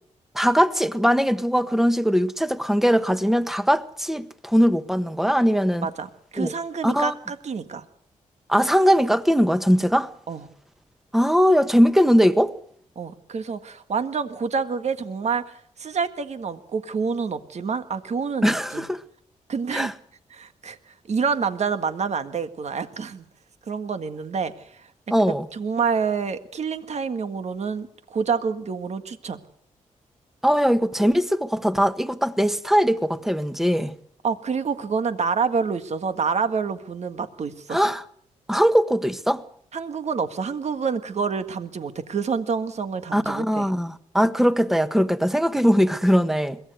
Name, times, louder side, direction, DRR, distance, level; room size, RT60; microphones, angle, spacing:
voice 1, 0.3-5.9 6.4-6.5 6.8-7.1 8.5-10.1 11.1-12.5 18.4-19.0 19.7-19.9 25.1-25.4 30.4-33.9 37.7-38.0 38.5-39.4 43.1-46.6, equal, ahead, 1.4 m, -20 dB
voice 2, 5.8-7.8 10.3-10.4 12.9-18.8 19.5-19.9 20.3-20.8 21.1-23.2 23.7-24.5 25.5-29.4 34.2-37.8 39.7-43.7, right 5 dB, 55° right, 1.7 m, -27 dB
22.0 x 16.0 x 8.1 m
cardioid pair, 65°, 13 cm